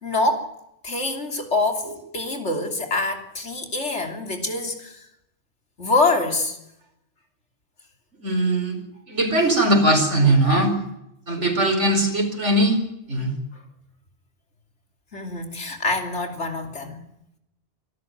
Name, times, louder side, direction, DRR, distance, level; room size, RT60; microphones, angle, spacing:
voice 1, 0.0-0.5 0.8-1.9 2.1-5.0 5.8-6.6 10.2-10.3 15.1-17.0, left 2 dB, 75° left, 4 dB, 3.5 m, -25 dB
voice 2, 8.2-8.8 9.1-10.7 11.3-12.8 13.1-13.3, right 1 dB, 90° right, 4 dB, 5.2 m, -20 dB
26.0 x 13.5 x 9.3 m, 0.83 s
omnidirectional pair, 1.2 m